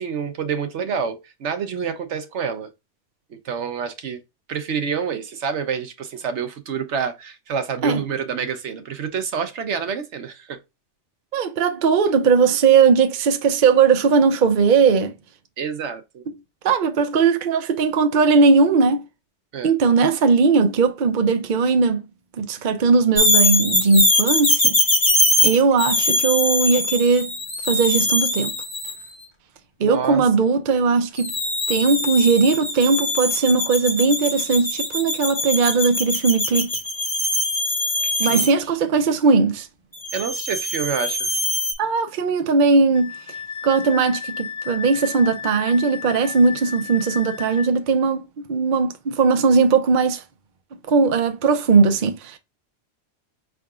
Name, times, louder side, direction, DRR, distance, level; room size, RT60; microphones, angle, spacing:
voice 1, 0.0-2.7 3.4-4.2 4.5-10.6 15.6-16.2 19.5-19.7 29.8-30.2 38.0-38.5 40.1-41.3, right 6 dB, 70° right, 1.0 m, -27 dB
voice 2, 11.3-15.1 16.6-19.0 19.6-22.0 22.4-24.8 25.4-27.3 27.7-28.5 29.8-31.3 31.7-36.7 38.2-39.7 41.8-43.1 43.6-48.2 48.5-50.2 50.9-52.4, right 4 dB, 50° right, 0.7 m, -18 dB
sound 1, 23.2-29.0 31.2-38.5 40.0-41.7, left 1 dB, 25° left, 1.4 m, -22 dB
Wind instrument woodwind instrument, 42.9-47.7, left 6 dB, 60° left, 0.4 m, -33 dB
5.5 x 3.6 x 2.4 m
omnidirectional pair, 1.2 m